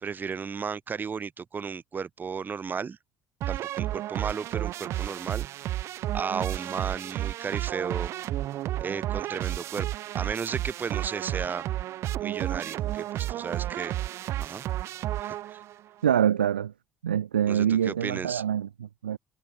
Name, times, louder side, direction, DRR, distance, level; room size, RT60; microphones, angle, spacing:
voice 1, 0.0-3.0 3.5-5.5 6.1-8.1 8.8-9.9 10.1-11.7 12.2-14.0 14.4-14.7 15.2-15.6 17.5-18.4, right 6 dB, 40° right, 2.4 m, -34 dB
sound 1, 3.4-15.8, right 14 dB, 65° right, 2.8 m, -32 dB
voice 2, 16.0-16.7 17.0-19.2, right 9 dB, 90° right, 1.2 m, -25 dB
hypercardioid pair, 50°, 5 cm